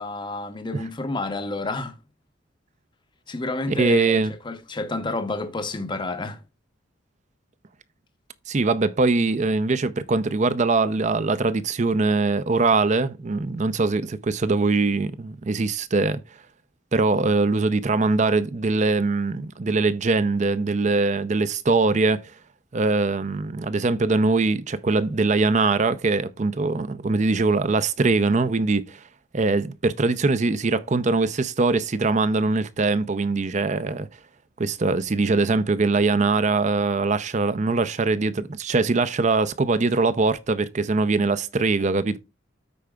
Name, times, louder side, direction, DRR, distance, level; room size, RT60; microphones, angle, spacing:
voice 1, 0.0-2.0 3.3-6.4, left 2 dB, 25° left, 0.7 m, -30 dB
voice 2, 3.7-4.3 8.5-16.2 16.9-22.2 22.7-29.0 29.3-34.1 34.6-42.2, right 3 dB, 35° right, 0.5 m, -22 dB
13.5 x 4.7 x 2.3 m
head